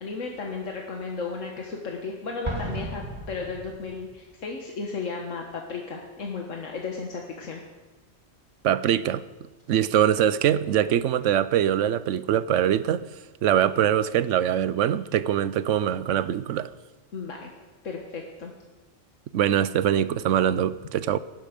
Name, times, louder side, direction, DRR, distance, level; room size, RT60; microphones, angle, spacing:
voice 1, 0.0-7.6 17.1-17.5 17.8-18.5, left 4 dB, 90° left, 1.8 m, -34 dB
Explosion, 2.4-4.2, right 1 dB, 25° right, 1.7 m, -35 dB
voice 2, 8.6-9.2 9.7-13.0 13.4-16.7 19.3-21.2, right 10 dB, 80° right, 1.0 m, -23 dB
17.5 x 11.5 x 5.2 m
omnidirectional pair, 1.3 m